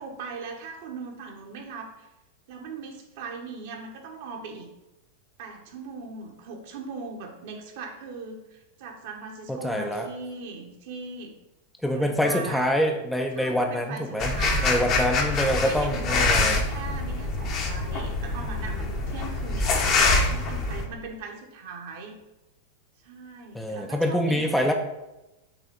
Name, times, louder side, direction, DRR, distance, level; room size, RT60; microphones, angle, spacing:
voice 1, 0.0-2.1 2.5-4.7 5.4-11.3 11.9-12.7 13.3-22.2 23.0-24.7, right 4 dB, 50° right, 2 dB, 1.1 m, -39 dB
voice 2, 9.5-10.1 11.8-16.6 23.5-24.7, equal, 5° left, 2 dB, 0.5 m, -26 dB
sound 1, 14.2-20.8, left 3 dB, 35° left, 0.9 m, -25 dB
6.0 x 3.3 x 5.3 m, 0.97 s
figure-of-eight pair, 90°, 0 cm